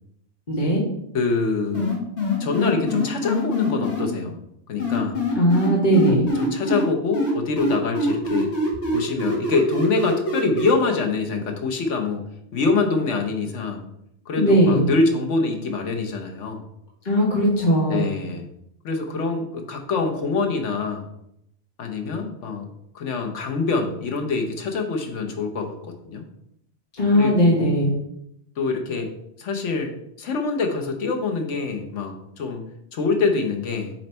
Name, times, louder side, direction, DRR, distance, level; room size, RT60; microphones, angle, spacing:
voice 1, 0.5-0.8 5.3-6.3 14.4-14.8 17.0-18.0 27.0-27.9, equal, 40° left, -4 dB, 1.4 m, -18 dB
voice 2, 1.1-1.9 2.4-4.3 4.7-5.2 6.3-8.5 8.9-12.2 12.5-13.9 14.3-16.6 17.9-18.5 18.8-21.1 21.8-22.7 22.9-25.8 26.0-26.2 27.1-27.8 28.6-29.1 29.4-32.6 32.9-33.9, left 4 dB, 80° left, 3 dB, 1.3 m, -25 dB
sound 1, 1.7-4.0 4.8-6.8 7.1-10.7, left 1 dB, 65° left, 1.8 m, -24 dB
7.2 x 3.2 x 4.3 m, 0.79 s
omnidirectional pair, 1.2 m